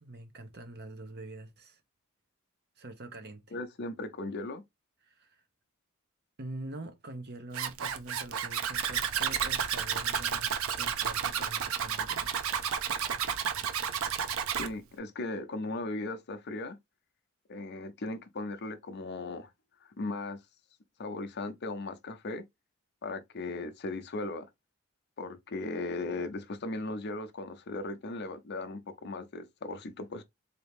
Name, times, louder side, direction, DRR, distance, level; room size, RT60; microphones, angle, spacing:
voice 1, 0.0-1.8 2.8-3.4 5.0-5.4 6.4-12.4, right 2 dB, 50° right, 0.8 m, -45 dB
voice 2, 3.5-4.6 14.5-16.8 17.5-19.5 19.8-20.4 21.0-22.4 23.0-24.5 25.2-30.2, left 2 dB, 50° left, 0.6 m, -37 dB
Zipper (clothing), 7.5-14.7, right 8 dB, 75° right, 0.6 m, -31 dB
3.9 x 2.8 x 3.4 m
head